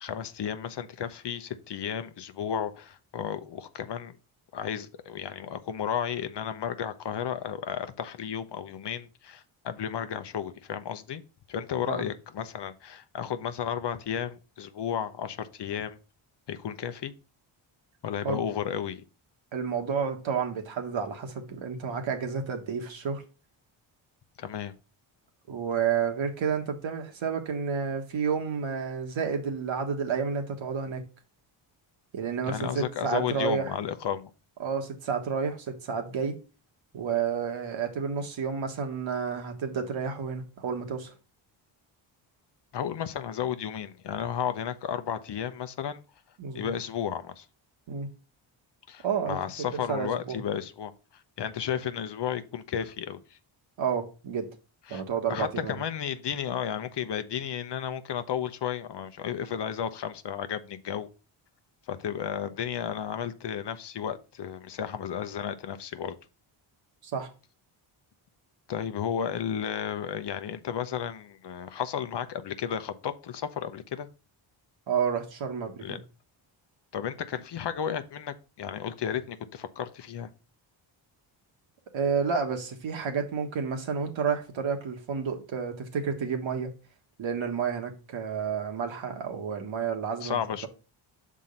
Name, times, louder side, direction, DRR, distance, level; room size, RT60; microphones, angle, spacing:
voice 1, 0.0-4.2 4.5-11.2 11.5-16.0 16.5-17.1 18.0-19.0 24.4-24.7 32.4-34.3 42.7-46.0 46.5-47.5 48.9-53.4 54.9-55.0 55.3-61.1 61.9-66.2 68.7-74.1 75.8-76.0 76.9-80.3 90.2-90.7, left 8 dB, 55° left, 0.8 m, -33 dB
voice 2, 19.5-23.2 25.5-31.0 32.1-33.7 34.6-36.4 36.9-41.1 46.4-46.7 47.9-48.1 49.0-49.4 49.7-50.4 53.8-54.5 54.9-55.8 67.0-67.3 74.9-76.0 81.9-86.7 87.2-90.7, right 6 dB, 65° right, 1.5 m, -30 dB
5.8 x 3.7 x 5.2 m
cardioid pair, 75°, 50 cm